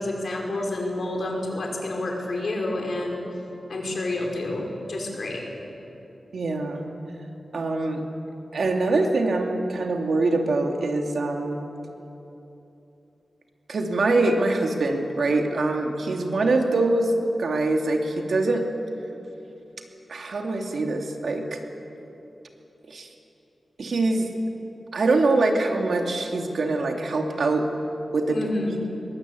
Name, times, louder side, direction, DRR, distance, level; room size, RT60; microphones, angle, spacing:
voice 1, 0.0-3.3 3.7-5.4 28.3-28.8, left 2 dB, 60° left, -1 dB, 5.1 m, -29 dB
voice 2, 6.3-6.9 7.5-8.0 8.5-11.6 13.7-17.1 17.4-18.6 20.1-21.6 22.9-23.1 23.8-24.3 24.9-27.7 28.1-28.4, right 2 dB, 70° right, 3 dB, 2.5 m, -24 dB
22.0 x 21.0 x 8.5 m, 3.0 s
wide cardioid pair, 115°, 0 cm